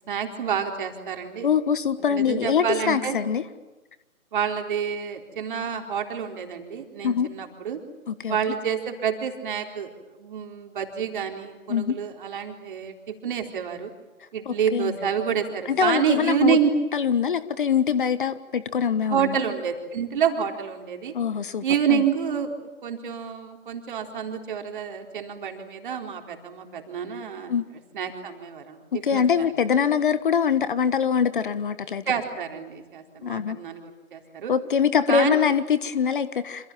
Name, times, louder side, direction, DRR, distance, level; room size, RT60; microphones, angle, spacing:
voice 1, 0.1-1.5 2.1-3.2 4.3-7.8 8.3-9.9 10.2-13.9 14.3-16.7 19.1-21.1 21.6-22.5 22.8-27.5 27.9-29.5 32.1-34.5 35.1-35.4, right 8 dB, 35° right, 4 dB, 4.1 m, -28 dB
voice 2, 1.4-3.4 7.0-7.3 8.1-8.4 11.7-11.9 14.4-14.9 15.7-16.6 16.9-19.4 21.1-21.6 21.9-22.0 27.5-27.6 28.9-32.0 33.2-33.6 34.5-36.7, left 7 dB, 40° left, 13 dB, 1.4 m, -23 dB
28.0 x 27.5 x 7.5 m, 1.2 s
figure-of-eight pair, 145°, 41 cm